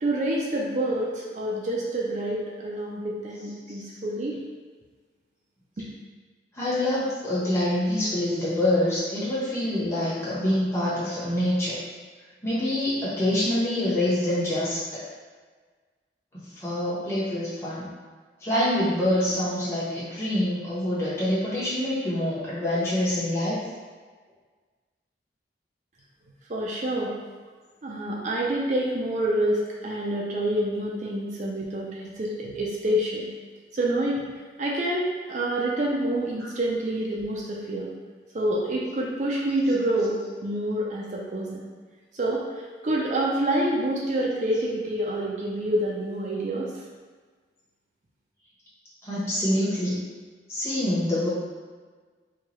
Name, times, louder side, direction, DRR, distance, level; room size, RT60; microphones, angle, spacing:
voice 1, 0.0-4.4 26.5-27.1 27.8-33.3 33.7-34.2 34.6-37.9 38.3-41.6 42.1-46.7, right 1 dB, 45° right, -3 dB, 0.4 m, -27 dB
voice 2, 6.5-11.8 12.4-15.0 16.3-17.9 18.4-23.6 49.0-50.0 50.5-51.3, left 1 dB, 15° left, -11 dB, 1.1 m, -26 dB
4.5 x 2.3 x 3.0 m, 1.4 s
head